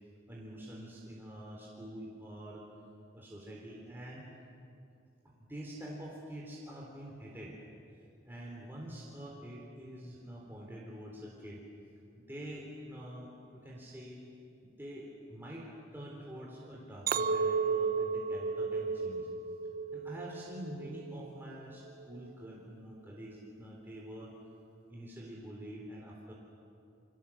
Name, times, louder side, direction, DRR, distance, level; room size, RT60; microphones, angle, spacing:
voice 1, 0.3-2.6 3.1-4.3 5.2-7.6 8.2-11.6 12.2-14.2 14.6-19.3 19.9-24.3 24.9-26.3, equal, 10° right, -3 dB, 3.9 m, -46 dB
Chink clink, 17.1-21.4 21.9-22.3, right 5 dB, 45° right, 0.6 m, -33 dB
29.5 x 25.5 x 7.4 m, 2.6 s
head